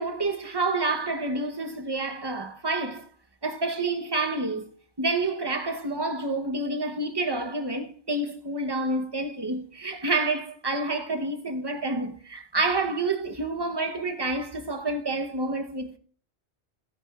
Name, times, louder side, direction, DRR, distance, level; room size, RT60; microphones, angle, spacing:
voice 1, 0.0-3.1 3.4-4.6 5.0-16.0, right 2 dB, 25° right, 1.0 m, -28 dB
16.0 x 9.9 x 2.4 m
omnidirectional pair, 1.2 m